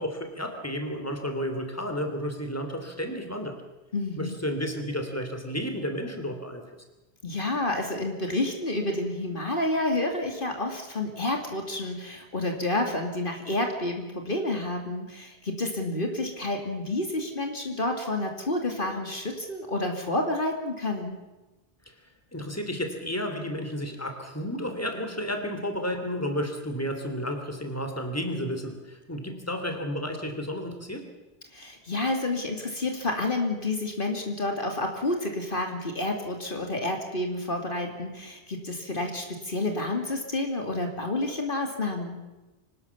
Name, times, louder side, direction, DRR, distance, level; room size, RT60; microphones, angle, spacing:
voice 1, 0.0-3.6 4.2-6.6 22.3-31.0, equal, 15° left, 5 dB, 3.0 m, -32 dB
voice 2, 3.9-4.3 7.2-21.2 31.5-42.2, left 2 dB, 55° left, 3 dB, 2.7 m, -29 dB
25.5 x 19.0 x 7.1 m, 1.1 s
omnidirectional pair, 1.1 m